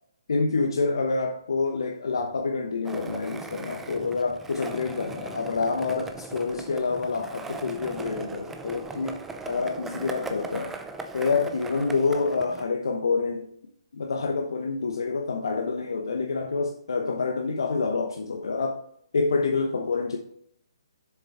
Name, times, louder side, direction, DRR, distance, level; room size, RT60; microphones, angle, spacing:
voice 1, 0.3-10.8 11.1-13.5 13.9-18.8 19.1-20.2, left 4 dB, 70° left, 3 dB, 1.0 m, -27 dB
Skateboard, 2.8-12.6, right 3 dB, 10° right, 0.6 m, -39 dB
7.3 x 7.2 x 3.5 m, 0.66 s
hypercardioid pair, 140°, 3 cm